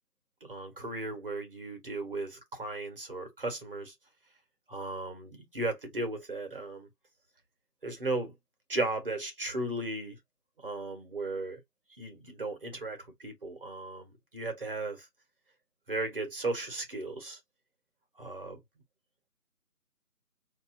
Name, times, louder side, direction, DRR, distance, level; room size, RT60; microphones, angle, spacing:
voice 1, 0.4-3.9 4.7-6.9 7.8-8.3 8.7-10.2 10.6-11.6 12.0-15.1 15.9-17.4 18.2-18.6, right 2 dB, 35° right, 1.3 m, -36 dB
5.2 x 2.8 x 2.6 m
figure-of-eight pair, 170°, 47 cm